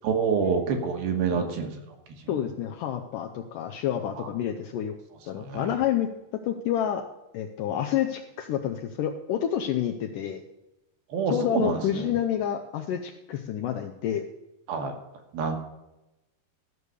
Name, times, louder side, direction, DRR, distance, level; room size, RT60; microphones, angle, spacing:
voice 1, 0.0-1.7 5.5-5.7 11.1-11.8 14.7-14.9 15.3-15.6, right 6 dB, 75° right, 3 dB, 3.2 m, -26 dB
voice 2, 2.3-4.9 5.3-6.1 6.4-7.0 7.3-10.4 11.3-14.3, left 10 dB, 80° left, 4 dB, 1.9 m, -29 dB
14.0 x 6.4 x 6.8 m, 0.96 s
omnidirectional pair, 4.5 m